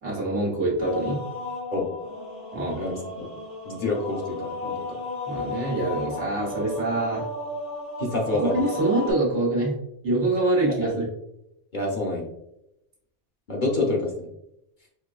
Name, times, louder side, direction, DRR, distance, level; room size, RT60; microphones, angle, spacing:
voice 1, 0.0-1.2 2.5-2.8 5.3-7.3 8.3-9.7 10.0-11.1, right 2 dB, 90° right, -3 dB, 1.4 m, -25 dB
sound 1, 0.8-9.1, left 2 dB, 90° left, 2.0 m, -34 dB
voice 2, 2.8-3.3 3.6-5.0 8.0-8.5 11.7-12.3 13.5-14.3, left 2 dB, 50° left, -2 dB, 0.8 m, -28 dB
4.8 x 2.5 x 2.3 m, 0.82 s
omnidirectional pair, 1.1 m